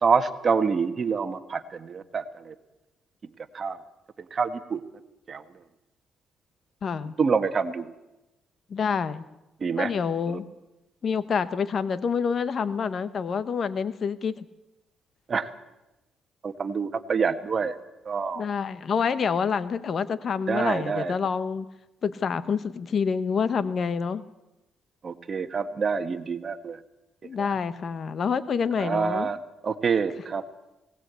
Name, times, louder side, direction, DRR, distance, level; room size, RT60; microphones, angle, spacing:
voice 1, 0.0-2.5 3.5-3.8 4.3-4.8 5.3-5.4 7.2-7.9 9.6-9.9 15.3-15.5 16.4-17.7 18.0-18.4 20.5-21.1 25.0-26.8 28.8-29.4 29.6-30.4, right 5 dB, 40° right, 9 dB, 1.6 m, -26 dB
voice 2, 6.8-7.1 8.7-9.2 9.8-10.4 11.0-14.4 18.3-21.7 22.0-24.2 27.2-29.3, left 6 dB, 50° left, 14 dB, 1.1 m, -27 dB
19.5 x 18.0 x 8.3 m, 0.96 s
cardioid pair, 90°, 0 cm